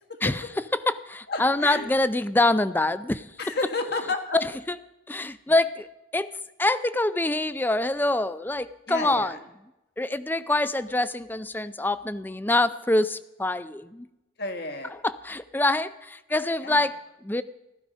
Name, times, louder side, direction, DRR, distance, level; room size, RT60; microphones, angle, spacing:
voice 1, 0.7-3.5 4.3-4.8 5.1-9.4 10.0-14.1 15.0-17.4, left 2 dB, 10° left, 14 dB, 0.4 m, -25 dB
voice 2, 1.3-1.9 3.4-4.4 8.9-9.4 14.4-14.9 16.6-16.8, left 3 dB, 55° left, 5 dB, 1.7 m, -31 dB
15.5 x 13.0 x 5.3 m, 0.94 s
head